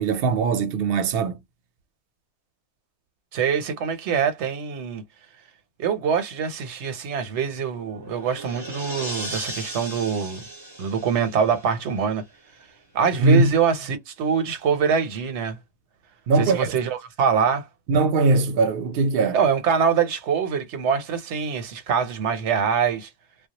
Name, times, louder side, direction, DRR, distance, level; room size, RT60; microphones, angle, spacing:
voice 1, 0.0-1.4 13.2-13.5 16.3-16.7 17.9-19.4, right 3 dB, 65° right, 0.7 m, -20 dB
voice 2, 3.3-5.0 5.8-10.4 10.8-12.2 12.9-15.6 16.4-17.7 19.3-23.1, right 6 dB, 90° right, 1.0 m, -24 dB
sound 1, 7.6-12.1, right 1 dB, 25° right, 0.7 m, -37 dB
2.3 x 2.0 x 2.8 m
omnidirectional pair, 1.1 m